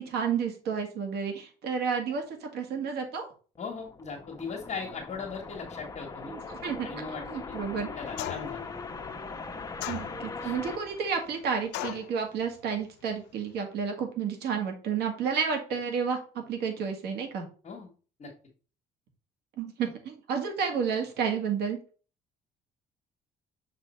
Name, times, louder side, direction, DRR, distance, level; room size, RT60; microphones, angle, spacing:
voice 1, 0.0-3.3 6.3-6.9 7.3-7.9 9.9-17.4 19.6-21.8, right 6 dB, 75° right, 4 dB, 1.8 m, -31 dB
voice 2, 3.6-6.3 6.8-7.6 7.9-8.7 10.4-10.5 17.6-17.9 18.2-18.3, left 5 dB, 40° left, 0 dB, 1.4 m, -39 dB
sound 1, 3.6-11.9, left 4 dB, 20° left, 0.8 m, -41 dB
sound 2, 8.2-8.6 9.8-10.5 11.7-12.1, left 15 dB, 90° left, 0.4 m, -36 dB
6.2 x 3.6 x 4.3 m, 0.37 s
cardioid pair, 110°, 17 cm